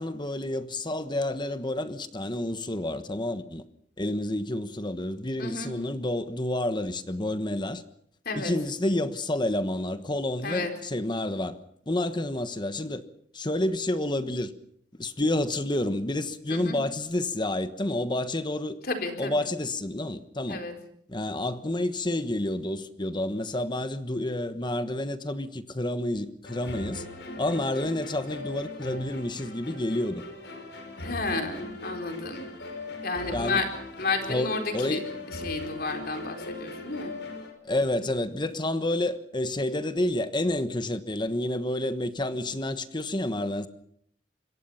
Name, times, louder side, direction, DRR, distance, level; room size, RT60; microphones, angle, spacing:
voice 1, 0.0-3.6 4.0-7.8 8.3-11.6 11.9-13.0 13.3-14.5 15.0-18.8 19.2-20.6 21.1-27.1 27.4-30.2 33.3-33.6 34.3-35.1 37.6-43.7, left 1 dB, 25° left, 1.3 m, -29 dB
voice 2, 5.4-5.7 8.2-8.5 10.4-10.7 16.5-16.8 18.8-19.4 20.5-20.7 31.0-32.4 33.0-33.7 34.0-35.0 35.3-37.1, left 3 dB, 60° left, 4.3 m, -31 dB
sound 1, 26.4-37.5, left 2 dB, 80° left, 5.2 m, -40 dB
26.0 x 22.0 x 5.8 m
head